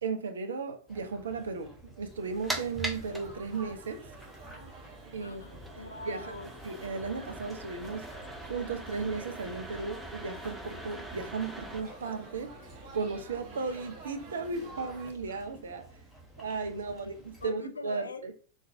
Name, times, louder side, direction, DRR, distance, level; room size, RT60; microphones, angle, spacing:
voice 1, 0.0-4.0 5.1-5.4 6.0-6.4 6.6-12.5 12.9-15.9 16.4-18.3, right 4 dB, 65° right, 0.5 m, -35 dB
sound 1, 0.9-17.5, right 3 dB, 10° left, 1.0 m, -52 dB
sound 2, 2.1-11.8, right 1 dB, 5° right, 0.7 m, -43 dB
Laughter / Chatter / Crowd, 2.9-15.1, right 3 dB, 45° right, 1.2 m, -50 dB
voice 2, 5.2-6.5 16.7-17.1 17.4-18.3, left 3 dB, 75° left, 0.4 m, -43 dB
3.9 x 3.1 x 2.6 m
figure-of-eight pair, 90°, 0 cm